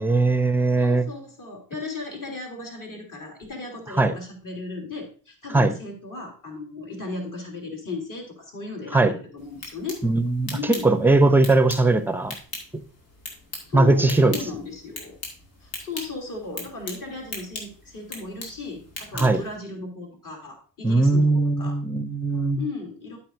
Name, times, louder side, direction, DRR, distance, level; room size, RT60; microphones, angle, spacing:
voice 1, 0.0-1.1 4.0-4.1 5.5-5.7 8.9-9.1 10.0-10.6 10.8-12.3 13.7-14.4 19.1-19.4 20.8-22.6, right 2 dB, 5° right, 13 dB, 0.6 m, -19 dB
voice 2, 0.8-10.0 10.5-10.9 13.6-15.2 15.6-21.7 22.6-23.2, left 3 dB, 40° left, 1 dB, 3.1 m, -36 dB
sound 1, 9.4-19.5, left 2 dB, 65° left, 2.4 m, -40 dB
12.5 x 5.7 x 2.6 m, 0.41 s
figure-of-eight pair, 45°, 48 cm